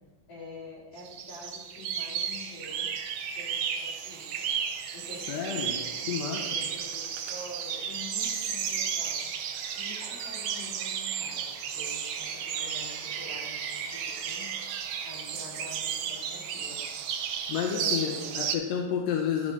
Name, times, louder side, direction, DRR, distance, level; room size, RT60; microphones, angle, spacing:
voice 1, 0.3-2.9 3.4-4.7 4.9-9.2 9.8-14.6 15.0-16.8 17.6-18.4, left 2 dB, 50° left, -6 dB, 3.5 m, -46 dB
sound 1, 1.0-18.6, right 7 dB, 85° right, 1.3 m, -33 dB
voice 2, 5.3-5.7 6.1-6.4 17.5-19.5, left 8 dB, 75° left, 0 dB, 1.7 m, -30 dB
10.5 x 6.4 x 3.2 m, 1.1 s
omnidirectional pair, 3.5 m